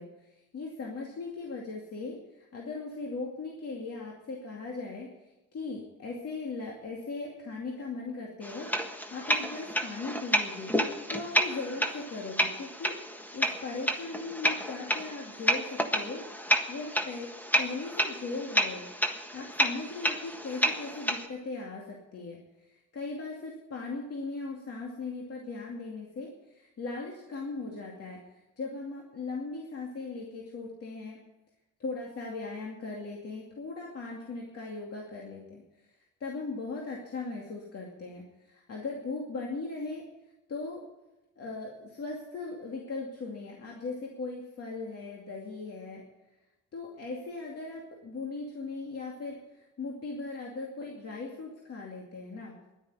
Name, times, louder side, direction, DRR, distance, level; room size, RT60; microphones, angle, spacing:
voice 1, 0.0-5.1 5.5-10.7 11.1-13.0 13.3-16.2 16.7-17.3 17.6-18.8 19.3-22.4 22.7-28.2 28.6-31.2 31.8-35.6 36.2-40.0 40.5-40.8 41.4-46.0 46.7-52.5, left 3 dB, 55° left, -1 dB, 2.5 m, -38 dB
sound 1, 8.4-21.3, equal, 5° left, 1.5 m, -30 dB
11.0 x 9.7 x 9.6 m, 1.0 s
cardioid pair, 90°, 30 cm